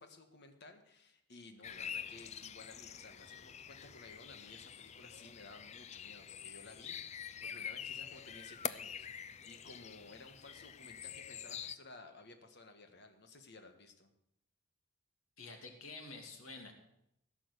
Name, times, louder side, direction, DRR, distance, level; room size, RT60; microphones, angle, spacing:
voice 1, 0.0-14.1, left 3 dB, 50° left, 6 dB, 1.6 m, -56 dB
sound 1, 1.6-11.8, left 8 dB, 30° left, 0.4 m, -46 dB
voice 2, 15.4-16.7, left 3 dB, 80° left, 3 dB, 2.4 m, -49 dB
16.0 x 6.1 x 8.3 m, 0.80 s
head